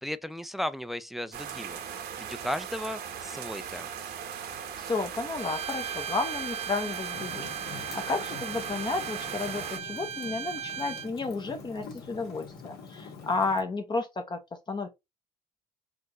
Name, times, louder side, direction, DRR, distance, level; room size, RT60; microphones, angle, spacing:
voice 1, 0.0-1.8 2.2-3.9, left 1 dB, ahead, 0.3 m, -35 dB
sound 1, 1.3-9.8, right 8 dB, 70° right, 1.0 m, -39 dB
voice 2, 4.8-14.4 14.7-14.9, left 3 dB, 25° left, 0.7 m, -32 dB
Bowed string instrument, 5.4-11.1, right 7 dB, 35° right, 0.7 m, -38 dB
Fire, 7.1-13.6, left 5 dB, 70° left, 1.7 m, -45 dB
4.4 x 2.5 x 2.9 m
cardioid pair, 110°, 17 cm